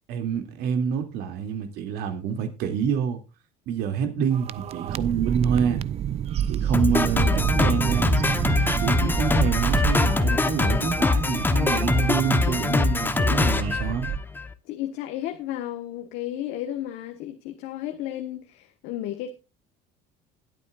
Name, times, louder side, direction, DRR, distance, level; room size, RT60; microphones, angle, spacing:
voice 1, 0.1-3.2 3.7-5.8 6.5-8.2 8.8-14.1, right 7 dB, 75° right, 2.5 m, -27 dB
sound 1, 4.3-14.2, right 10 dB, 40° right, 0.5 m, -29 dB
Drum kit, 6.7-14.5, left 3 dB, 10° left, 0.9 m, -23 dB
voice 2, 14.7-19.3, left 12 dB, 75° left, 1.4 m, -33 dB
20.5 x 8.4 x 2.4 m
cardioid pair, 140°, 17 cm